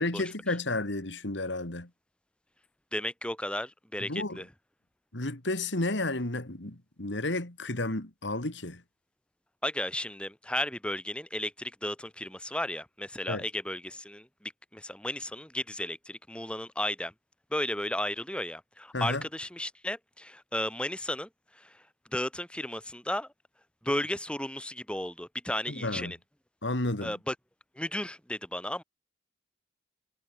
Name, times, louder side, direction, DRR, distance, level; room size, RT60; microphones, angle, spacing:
voice 1, 0.0-1.9 4.0-4.4 5.1-8.8 13.3-13.4 18.9-19.2 25.7-26.1 26.6-27.2, left 2 dB, 85° left, 3.0 m, -32 dB
voice 2, 2.9-4.5 9.6-17.1 17.5-21.3 21.6-21.7 22.1-23.3 23.8-26.2 27.0-27.3 27.8-28.8, left 1 dB, 5° left, 4.6 m, -34 dB
head